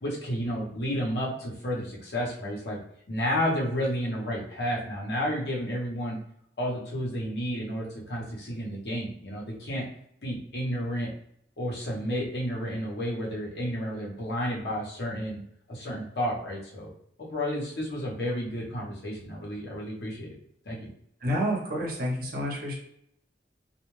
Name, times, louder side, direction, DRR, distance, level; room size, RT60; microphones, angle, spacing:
voice 1, 0.0-2.8 3.1-6.2 6.6-9.9 10.2-11.1 11.6-15.4 15.7-16.9 17.2-20.3 20.6-20.8, equal, 65° left, -4 dB, 0.9 m, -31 dB
voice 2, 21.2-22.7, equal, 55° right, -3 dB, 0.9 m, -29 dB
2.4 x 2.3 x 3.1 m, 0.72 s
head